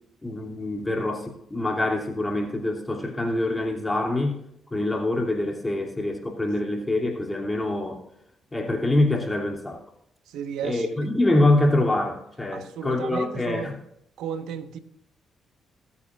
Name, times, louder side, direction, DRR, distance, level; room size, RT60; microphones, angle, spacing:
voice 1, 0.2-4.4 4.7-8.0 8.5-9.8 10.6-13.8, left 2 dB, 20° left, 2.7 m, -25 dB
voice 2, 10.3-10.9 12.5-13.7 14.2-14.8, right 8 dB, 80° right, 1.1 m, -34 dB
20.0 x 8.4 x 2.4 m
supercardioid pair, 60°, 0 cm